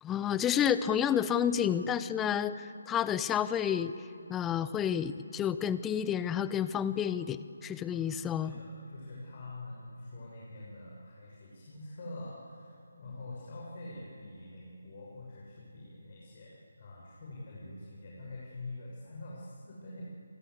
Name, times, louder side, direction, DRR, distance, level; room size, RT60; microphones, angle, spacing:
voice 1, 0.0-3.9 4.3-8.5, left 9 dB, 10° left, 14 dB, 0.7 m, -30 dB
voice 2, 7.9-20.0, left 2 dB, 40° left, -5 dB, 6.3 m, -45 dB
29.0 x 23.0 x 8.2 m, 2.5 s
figure-of-eight pair, 150°, 0 cm